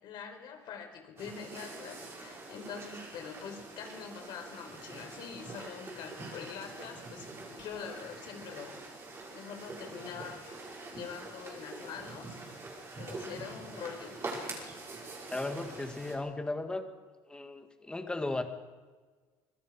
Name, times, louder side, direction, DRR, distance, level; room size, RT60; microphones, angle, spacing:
voice 1, 0.0-8.8 9.3-12.4 12.9-14.2, left 7 dB, 60° left, 4 dB, 4.7 m, -44 dB
sound 1, 1.2-16.2, right 3 dB, 30° right, 5.9 m, -45 dB
voice 2, 15.3-16.8 17.3-18.4, left 2 dB, 10° left, 6 dB, 1.9 m, -36 dB
25.5 x 21.5 x 5.0 m, 1.4 s
cardioid pair, 145°, 9 cm